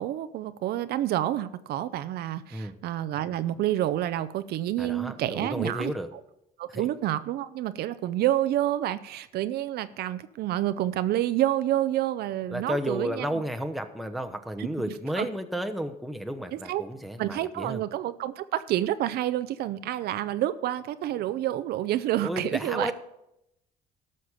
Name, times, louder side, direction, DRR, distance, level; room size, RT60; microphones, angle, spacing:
voice 1, 0.0-5.9 6.6-13.3 14.6-14.7 15.2-15.3 16.5-16.8 17.2-22.9, right 13 dB, 70° right, 13 dB, 0.6 m, -28 dB
voice 2, 4.8-6.1 6.7-6.9 12.5-17.8 22.2-22.9, equal, ahead, 5 dB, 0.9 m, -32 dB
13.0 x 6.5 x 5.6 m, 0.83 s
cardioid pair, 110°, 17 cm